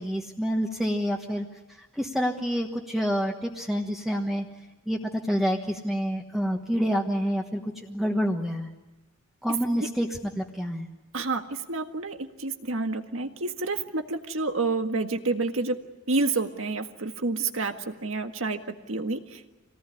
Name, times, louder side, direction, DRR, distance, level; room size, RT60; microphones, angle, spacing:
voice 1, 0.0-1.5 1.8-4.4 4.9-5.0 5.2-8.7 9.4-10.9, equal, ahead, 1 dB, 1.3 m, -28 dB
voice 2, 11.1-15.8 16.1-19.4, right 3 dB, 85° right, 6 dB, 1.7 m, -29 dB
26.0 x 18.5 x 9.9 m, 1.1 s
head